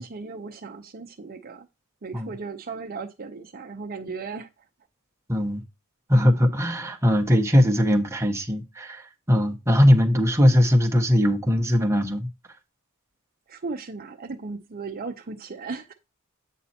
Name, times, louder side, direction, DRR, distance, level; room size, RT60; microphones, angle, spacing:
voice 1, 0.0-1.7 2.0-4.5 13.5-15.9, right 4 dB, 45° right, 0.7 m, -36 dB
voice 2, 5.3-5.6 6.1-9.0 9.3-12.3, equal, 15° right, 1.1 m, -20 dB
8.4 x 4.2 x 4.2 m
head